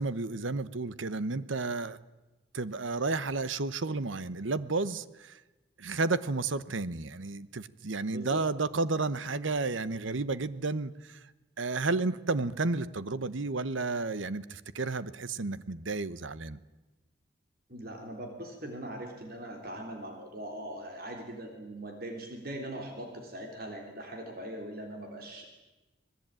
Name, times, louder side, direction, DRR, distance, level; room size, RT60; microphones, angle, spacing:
voice 1, 0.0-2.0 2.5-5.4 5.8-11.2 11.6-16.6, right 3 dB, 80° right, 16 dB, 1.0 m, -32 dB
voice 2, 8.1-8.4 17.7-25.5, right 1 dB, 50° right, 3 dB, 3.4 m, -41 dB
26.0 x 20.0 x 9.0 m, 1.1 s
head